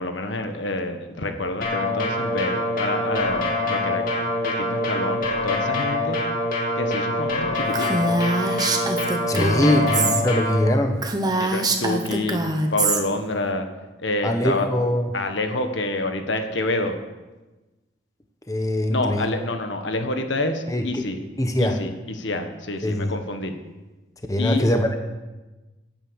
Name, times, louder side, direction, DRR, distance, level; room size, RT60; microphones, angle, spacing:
voice 1, 0.0-4.0 4.4-6.2 6.7-8.2 9.4-10.1 11.4-12.4 12.7-13.7 14.0-14.7 15.1-16.9 18.9-21.2 21.6-23.5 24.4-24.7, left 2 dB, 85° left, 6 dB, 1.5 m, -27 dB
sound 1, 1.6-10.6, left 1 dB, 45° left, 2.6 m, -25 dB
Female speech woman speaking, 7.7-10.2 10.6-10.7 11.0-13.0, right 2 dB, 20° right, 1.2 m, -24 dB
voice 2, 9.3-11.0 14.2-15.1 18.5-19.3 20.7-21.0 21.4-21.8 22.8-23.1 24.3-25.0, left 1 dB, 20° left, 5 dB, 1.0 m, -22 dB
16.5 x 8.9 x 6.4 m, 1.1 s
head